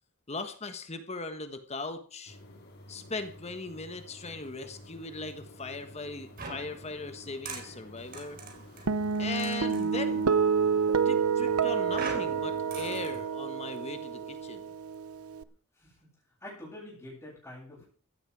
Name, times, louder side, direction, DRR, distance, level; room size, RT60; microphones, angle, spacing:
voice 1, 0.3-2.4 2.9-8.4 9.2-10.2 11.0-14.7, left 3 dB, 30° left, 9 dB, 1.3 m, -39 dB
sound 1, 2.3-13.3, left 1 dB, 50° left, 4.2 m, -50 dB
sound 2, 6.4-9.9 11.9-13.2, right 4 dB, 40° right, 4.0 m, -43 dB
Guitar, 8.9-15.4, right 6 dB, 85° right, 0.8 m, -28 dB
voice 2, 15.4-16.0 16.4-18.0, left 1 dB, 15° left, -8 dB, 7.9 m, -47 dB
15.5 x 11.5 x 4.8 m, 0.42 s
head